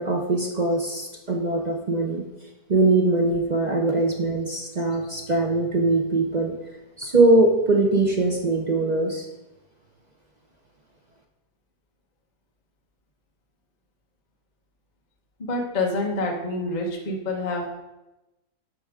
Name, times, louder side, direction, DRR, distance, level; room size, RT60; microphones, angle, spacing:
voice 1, 0.0-2.2 2.7-6.5 7.0-9.3, right 2 dB, 50° right, 0 dB, 0.5 m, -21 dB
voice 2, 15.4-17.7, left 2 dB, 30° left, 1 dB, 1.0 m, -27 dB
12.0 x 4.8 x 3.6 m, 1.0 s
omnidirectional pair, 1.9 m